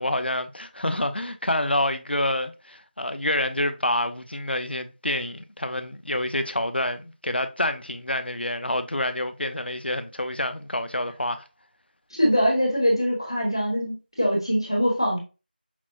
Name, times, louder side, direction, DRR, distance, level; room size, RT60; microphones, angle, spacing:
voice 1, 0.0-11.4, left 1 dB, 80° left, 0.7 m, -27 dB
voice 2, 12.2-15.2, equal, 30° left, 1.0 m, -23 dB
5.9 x 2.1 x 2.7 m
figure-of-eight pair, 180°, 6 cm